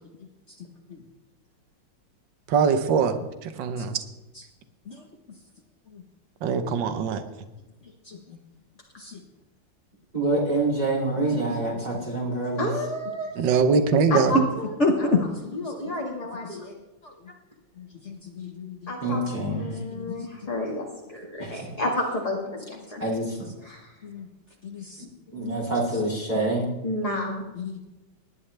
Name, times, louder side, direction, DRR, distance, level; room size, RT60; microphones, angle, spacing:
voice 1, 2.5-3.2 3.4-4.0 6.4-7.2 13.4-14.4, right 5 dB, 75° right, 9 dB, 1.7 m, -22 dB
voice 2, 10.1-12.7 19.0-19.8 21.4-21.7 23.0-23.5 25.0-26.7, right 2 dB, 20° right, -4 dB, 3.3 m, -27 dB
voice 3, 12.6-13.3 14.1-16.7 18.9-19.2 19.5-23.0 23.6-23.9 26.8-27.4, left 1 dB, 20° left, -2 dB, 2.0 m, -31 dB
voice 4, 14.8-15.2 16.5-16.6 18.0-18.8 20.0-20.3 24.0-24.3 24.6-24.8 25.4-25.6 27.6-27.9, left 3 dB, 40° left, 3 dB, 1.4 m, -28 dB
19.5 x 11.0 x 3.4 m, 1.1 s
omnidirectional pair, 2.0 m